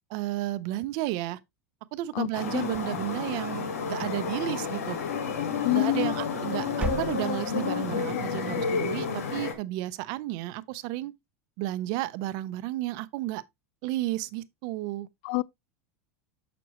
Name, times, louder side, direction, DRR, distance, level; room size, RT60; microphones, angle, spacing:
voice 1, 0.1-1.4 1.9-5.0 5.7-11.1 11.6-13.4 13.8-15.1, right 16 dB, 60° right, 0.6 m, -32 dB
sound 1, 2.3-9.5, left 6 dB, 85° left, 1.6 m, -31 dB
sound 2, 2.6-3.7 4.2-4.9 5.9-6.4 6.7-7.6, right 1 dB, 15° right, 1.4 m, -37 dB
voice 2, 5.6-6.2 15.2-15.4, left 22 dB, 60° left, 0.4 m, -26 dB
7.0 x 6.0 x 3.0 m
hypercardioid pair, 110°, 8 cm